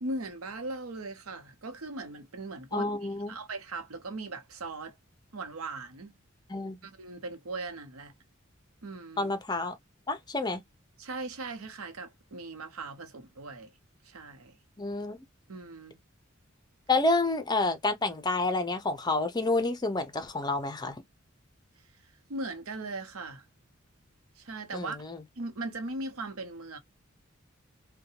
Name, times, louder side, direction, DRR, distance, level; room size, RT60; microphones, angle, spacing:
voice 1, 0.0-5.0 5.3-6.1 6.8-8.1 8.8-9.3 11.0-13.7 14.0-14.6 15.5-16.0 22.3-23.4 24.4-25.0 25.4-26.8, right 2 dB, 90° right, 0.8 m, -39 dB
voice 2, 2.7-3.4 6.5-6.8 9.2-9.8 10.1-10.6 14.8-15.2 16.9-21.0 24.7-25.2, left 2 dB, 20° left, 0.5 m, -29 dB
2.6 x 2.2 x 2.8 m
head